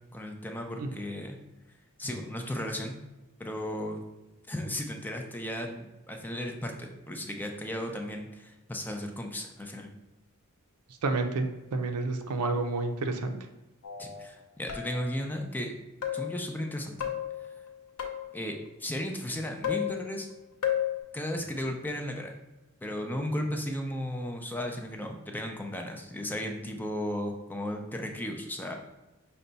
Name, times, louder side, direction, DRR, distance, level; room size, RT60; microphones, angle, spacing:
voice 1, 0.1-1.4 2.0-3.0 3.4-4.0 4.5-9.9 14.0-15.7 16.1-17.1 17.4-17.5 18.3-20.3 21.1-22.3 22.8-28.7, left 1 dB, 10° left, 3 dB, 0.4 m, -35 dB
voice 2, 11.0-13.4, right 3 dB, 85° right, 6 dB, 0.5 m, -30 dB
sound 1, 13.8-14.3 14.7-15.3 16.0-16.5 17.0-18.4 19.6-20.3 20.6-21.0, left 10 dB, 80° left, 0.7 m, -33 dB
5.2 x 2.2 x 3.9 m, 1.0 s
head